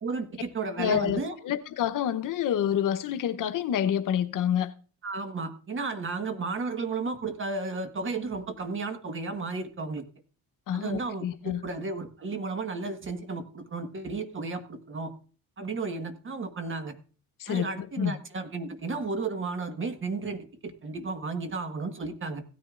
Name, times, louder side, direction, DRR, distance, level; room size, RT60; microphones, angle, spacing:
voice 1, 0.0-1.3 5.0-10.1 10.7-15.1 15.6-17.0 17.5-22.4, right 4 dB, 35° right, 1.4 m, -33 dB
voice 2, 0.8-4.7 10.7-11.6 17.4-18.1, left 9 dB, 60° left, 0.9 m, -28 dB
16.5 x 9.9 x 2.5 m
cardioid pair, 100°, 35 cm